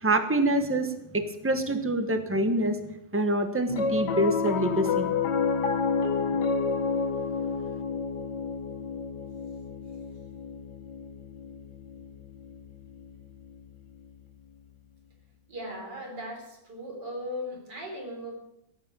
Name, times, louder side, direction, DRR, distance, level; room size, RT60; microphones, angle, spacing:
voice 1, 0.0-2.8 3.1-5.1, right 1 dB, 10° right, 7 dB, 1.2 m, -26 dB
Piano, 3.7-14.2, left 5 dB, 75° left, 1.7 m, -30 dB
voice 2, 15.5-18.3, equal, 80° right, 1 dB, 4.5 m, -37 dB
16.5 x 8.7 x 8.8 m, 0.84 s
omnidirectional pair, 1.8 m